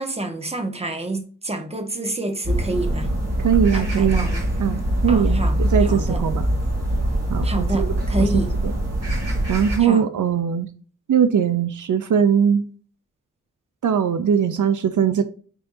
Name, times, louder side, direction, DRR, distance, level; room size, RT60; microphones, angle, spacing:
voice 1, 0.0-3.1 3.7-4.5 5.1-6.2 7.4-8.5 9.8-10.0, right 2 dB, 20° right, 1.5 m, -28 dB
sound 1, 2.4-9.8, right 1 dB, 55° right, 3.0 m, -23 dB
voice 2, 3.4-4.3 4.6-6.4 7.3-8.3 8.6-8.7 9.5-10.7 11.1-12.6 13.8-15.2, right 7 dB, 75° right, 0.7 m, -20 dB
8.9 x 4.7 x 2.8 m
wide cardioid pair, 105°, 31 cm